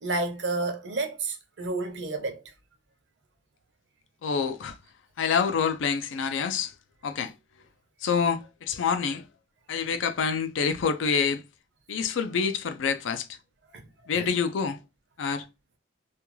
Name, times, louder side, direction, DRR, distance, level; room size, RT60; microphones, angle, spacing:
voice 1, 0.0-2.5 13.7-13.9 14.1-14.4, right 3 dB, 65° right, 0.7 m, -31 dB
voice 2, 4.2-4.8 5.2-6.7 7.0-7.3 8.0-9.3 9.7-11.4 11.9-13.3 14.1-14.8 15.2-15.5, left 6 dB, 80° left, 0.4 m, -27 dB
2.4 x 2.2 x 3.0 m
head